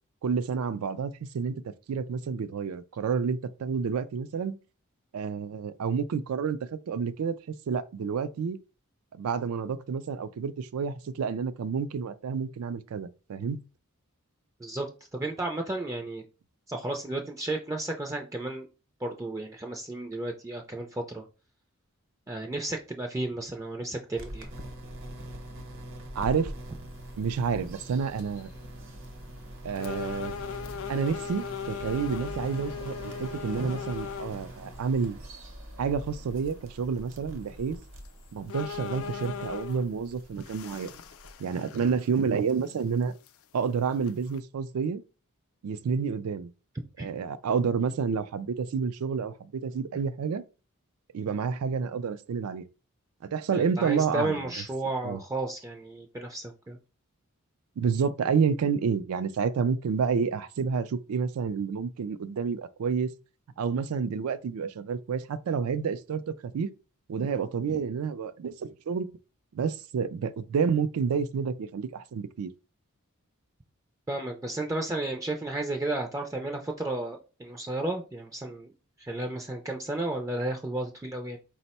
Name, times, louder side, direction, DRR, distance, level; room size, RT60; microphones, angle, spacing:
voice 1, 0.2-1.6 1.9-4.6 5.1-6.6 6.9-7.4 7.7-8.6 9.2-13.6 26.2-26.5 27.2-28.5 29.6-30.3 30.9-35.2 35.8-37.8 38.3-40.9 41.4-43.1 43.5-45.0 45.6-46.5 47.0-50.4 51.1-52.6 53.2-54.4 55.0-55.2 57.8-63.1 63.6-66.7 67.1-69.1 69.5-72.5, right 6 dB, 85° right, 0.4 m, -29 dB
voice 2, 14.6-16.2 16.7-18.7 19.0-21.2 22.3-24.5 47.0-47.1 53.5-56.8 74.1-78.7 79.0-81.4, right 2 dB, 15° right, 0.4 m, -33 dB
sound 1, 24.2-41.4, right 1 dB, 60° right, 0.9 m, -43 dB
sound 2, 27.4-27.5 28.0-28.4 29.0-29.1 29.8-34.4 35.0-35.1 37.5-37.6 38.1-38.2 38.5-39.9 40.4-42.2 42.5-42.6 43.3-43.4 44.0-44.4, left 6 dB, 70° left, 0.4 m, -38 dB
4.2 x 2.1 x 4.1 m
head